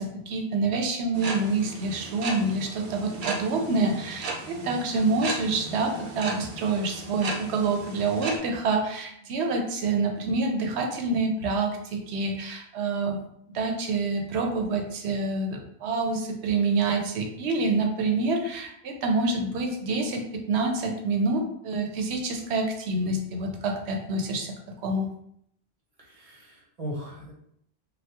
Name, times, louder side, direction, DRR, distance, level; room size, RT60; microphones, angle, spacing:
voice 1, 0.0-13.2 13.5-24.5 24.8-25.1, right 3 dB, 85° right, 3 dB, 0.9 m, -27 dB
sound 1, 1.1-8.4, right 3 dB, 60° right, 0.6 m, -36 dB
voice 2, 26.0-27.3, equal, 35° right, -3 dB, 0.9 m, -38 dB
3.3 x 2.3 x 2.8 m, 0.71 s
omnidirectional pair, 1.1 m